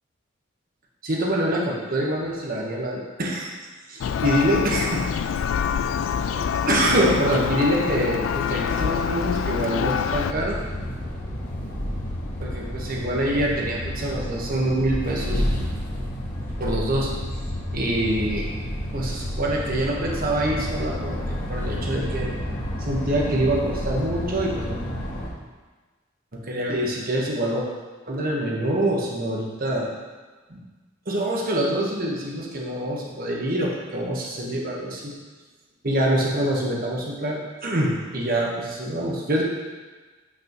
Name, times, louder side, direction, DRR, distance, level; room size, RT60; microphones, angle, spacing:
voice 1, 1.0-3.5 3.9-5.0 6.5-10.6 12.4-15.4 16.6-17.1 17.7-18.5 18.9-22.3 22.8-24.8 26.3-27.7 28.1-29.9 30.5-30.6 31.1-35.1 35.8-39.4, right 1 dB, 45° right, -2 dB, 1.3 m, -25 dB
Church bell, 4.0-10.3, left 7 dB, 85° left, 0.3 m, -26 dB
sound 1, 10.1-25.3, equal, 45° left, 1.5 m, -30 dB
8.1 x 6.1 x 3.1 m, 1.3 s
head